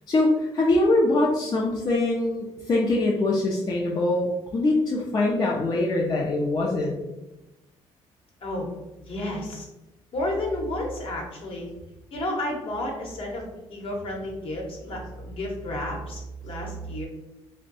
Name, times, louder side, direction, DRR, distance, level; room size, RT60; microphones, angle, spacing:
voice 1, 0.1-7.0, left 2 dB, 40° left, -3 dB, 0.5 m, -23 dB
voice 2, 9.0-9.7 10.1-11.7 12.1-17.1, left 1 dB, 55° left, 0 dB, 1.0 m, -31 dB
2.6 x 2.1 x 4.0 m, 0.98 s
cardioid pair, 95°, 11 cm